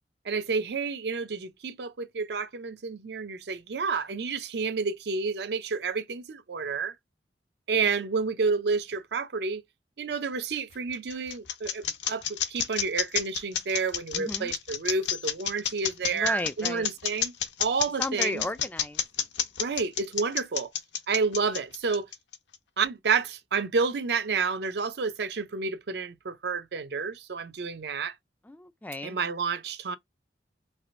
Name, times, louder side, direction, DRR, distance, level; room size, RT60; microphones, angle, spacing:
voice 1, 0.2-6.9 7.7-9.6 10.0-17.3 17.6-18.5 19.6-20.7 21.1-22.1 22.8-28.1 29.0-30.0, right 4 dB, 65° right, 0.5 m, -30 dB
sound 1, 10.5-22.5, left 9 dB, 85° left, 0.8 m, -29 dB
voice 2, 14.1-14.5 16.1-16.9 18.0-19.0 28.4-29.2, left 2 dB, 10° left, 0.3 m, -34 dB
3.4 x 2.4 x 2.5 m
head